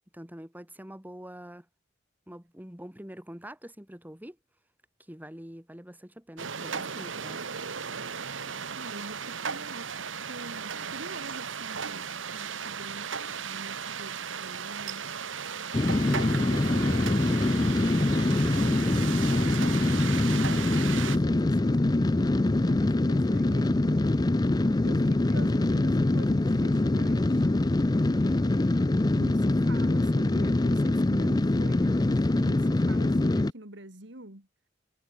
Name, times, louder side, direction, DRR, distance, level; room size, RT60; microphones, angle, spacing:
voice 1, 0.1-1.6 2.3-4.4 5.1-7.4 24.6-24.8, equal, 10° right, 3.2 m, -45 dB
sound 1, 6.4-21.2, right 6 dB, 85° right, 1.5 m, -36 dB
voice 2, 8.7-13.1 13.4-15.2 16.0-17.6 18.1-19.7 20.7-24.1 24.8-27.5 28.2-28.8 29.1-34.5, right 1 dB, 65° right, 4.7 m, -46 dB
sound 2, 15.7-33.5, left 2 dB, 20° left, 0.5 m, -24 dB
head